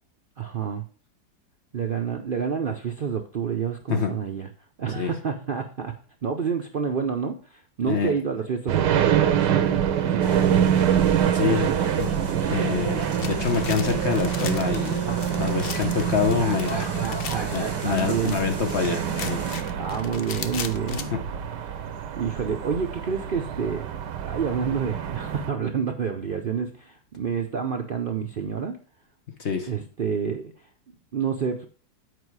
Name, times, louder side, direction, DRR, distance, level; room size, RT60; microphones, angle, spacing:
voice 1, 0.4-0.8 1.7-4.5 4.8-6.0 6.2-10.9 16.4-18.4 19.8-21.1 21.7-21.8 22.2-23.9 24.2-28.8 29.7-30.7 31.1-31.6, right 6 dB, 70° right, 4 dB, 0.5 m, -29 dB
sound 1, 8.7-25.5, right 9 dB, 85° right, 1.4 m, -26 dB
sound 2, 10.2-19.6, right 2 dB, 15° right, 1.0 m, -36 dB
voice 2, 11.3-11.7 12.0-12.1 12.5-15.0 15.4-16.7 17.5-19.4 21.1-21.2 29.4-29.7, left 6 dB, 50° left, 4 dB, 1.0 m, -26 dB
sound 3, 13.2-21.0, left 7 dB, 80° left, 0.5 m, -39 dB
8.1 x 4.9 x 4.7 m, 0.40 s
omnidirectional pair, 1.8 m